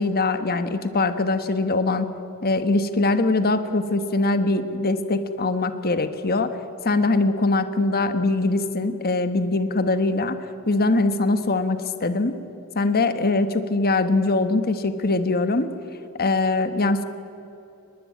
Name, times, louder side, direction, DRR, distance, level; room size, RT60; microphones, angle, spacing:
voice 1, 0.0-2.1 2.4-6.5 6.8-10.4 10.7-12.4 12.7-15.7 16.2-17.0, left 2 dB, 45° left, 10 dB, 1.3 m, -22 dB
22.5 x 20.5 x 9.5 m, 2.7 s
head